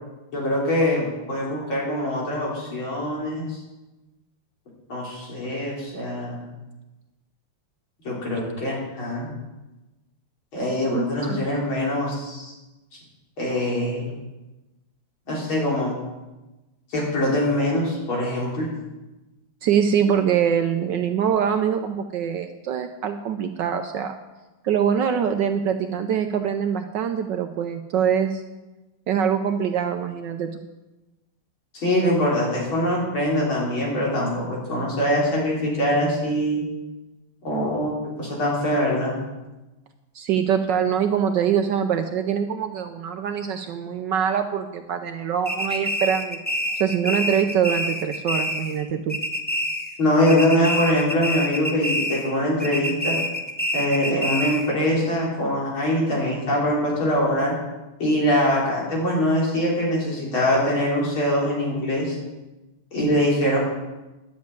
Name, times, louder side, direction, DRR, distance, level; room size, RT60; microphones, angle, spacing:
voice 1, 0.3-3.6 4.9-6.4 8.0-9.3 10.5-12.5 13.4-14.1 15.3-16.0 16.9-18.7 31.7-36.6 37.4-39.2 50.0-53.2 53.7-57.5 58.0-62.2 62.9-63.6, left 1 dB, 65° left, -4 dB, 4.5 m, -23 dB
voice 2, 10.9-11.4 19.6-24.1 24.6-28.4 29.1-30.6 40.1-46.4 46.8-49.2, right 8 dB, 70° right, 7 dB, 1.1 m, -24 dB
sound 1, 45.4-48.8 49.1-50.0 50.3-52.3 52.6-54.7, equal, 10° left, 0.6 m, -27 dB
10.5 x 7.5 x 8.8 m, 1.1 s
omnidirectional pair, 2.4 m